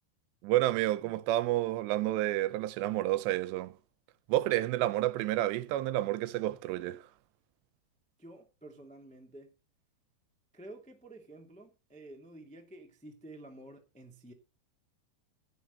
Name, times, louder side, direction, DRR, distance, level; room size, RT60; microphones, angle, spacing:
voice 1, 0.4-3.7 4.3-7.0, right 15 dB, 90° right, 3.0 m, -30 dB
voice 2, 8.2-9.5 10.5-14.3, right 1 dB, 10° left, 0.4 m, -51 dB
16.0 x 6.4 x 6.7 m
omnidirectional pair, 4.8 m